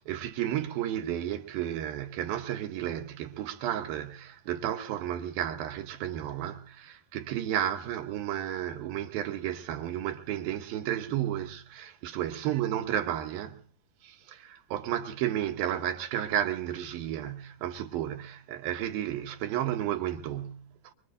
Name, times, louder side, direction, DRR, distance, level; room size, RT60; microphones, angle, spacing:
voice 1, 0.1-13.6 14.0-20.9, right 11 dB, 75° right, 2.6 m, -32 dB
23.5 x 23.5 x 2.6 m
omnidirectional pair, 4.4 m